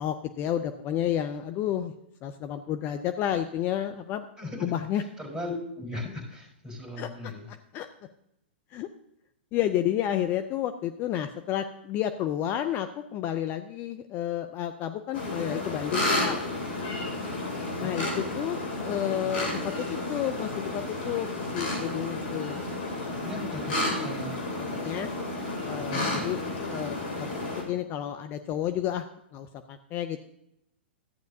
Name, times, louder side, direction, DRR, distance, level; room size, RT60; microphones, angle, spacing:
voice 1, 0.0-1.9 2.2-4.2 4.6-5.0 7.0-7.3 7.7-7.9 8.7-8.9 9.5-16.4 17.8-22.6 24.6-25.1 25.6-26.4 26.7-27.3 27.6-29.1 29.3-30.2, left 11 dB, 35° left, 9 dB, 0.5 m, -31 dB
voice 2, 4.4-7.5 17.8-17.9 23.2-24.4 25.9-26.2, left 2 dB, 10° right, -2 dB, 4.1 m, -38 dB
sound 1, 15.1-27.6, left 2 dB, 60° left, 2.8 m, -31 dB
14.0 x 9.3 x 2.7 m, 0.82 s
hypercardioid pair, 115°, 6 cm